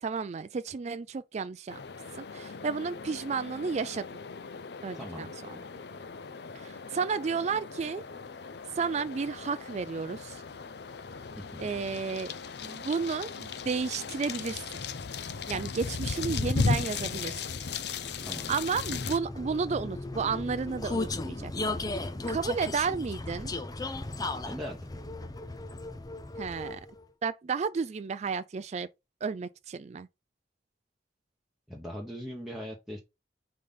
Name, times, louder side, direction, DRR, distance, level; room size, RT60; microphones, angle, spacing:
voice 1, 0.0-1.8 2.2-4.1 4.8-5.6 6.5-8.1 8.8-10.4 11.6-12.3 12.6-14.8 15.5-17.4 18.5-21.5 22.3-23.5 26.4-26.8 27.2-28.9 29.2-30.1, right 5 dB, 40° right, 0.3 m, -32 dB
sound 1, 1.7-19.2, left 4 dB, 65° left, 0.6 m, -36 dB
voice 2, 4.9-5.3 11.3-11.6 18.2-18.5 24.4-24.9 31.7-33.0, equal, ahead, 1.1 m, -40 dB
Vehicle, 15.4-27.0, left 2 dB, 20° left, 0.6 m, -37 dB
5.0 x 4.0 x 5.4 m
head